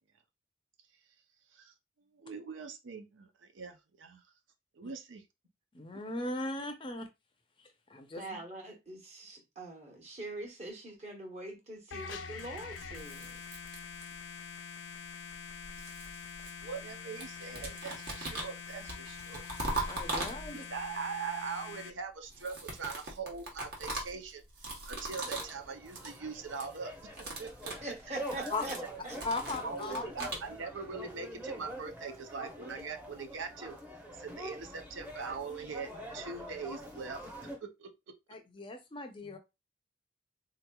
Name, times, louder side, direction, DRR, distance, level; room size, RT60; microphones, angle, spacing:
voice 1, 2.1-4.2 4.8-5.2 8.3-8.4 16.6-19.4 20.5-26.9 27.4-28.5 29.6-33.8 34.2-37.2 37.6-37.9, right 5 dB, 85° right, 0.6 m, -42 dB
voice 2, 5.7-7.1 7.6-8.3 19.9-20.6 28.5-28.6 29.2-30.3 38.3-39.4, left 2 dB, 25° left, 0.5 m, -38 dB
voice 3, 8.2-13.4 27.8-28.8 29.0-29.2, right 1 dB, 35° right, 1.0 m, -43 dB
sound 1, 11.9-21.9, left 6 dB, 85° left, 0.5 m, -45 dB
sound 2, 12.8-14.4 15.3-16.9 17.2-20.8 22.2-25.6 25.9-26.2 26.5-26.8 27.1-30.5, right 2 dB, 55° right, 1.1 m, -40 dB
sound 3, 25.1-37.6, equal, 10° right, 0.7 m, -45 dB
3.7 x 2.9 x 2.2 m
head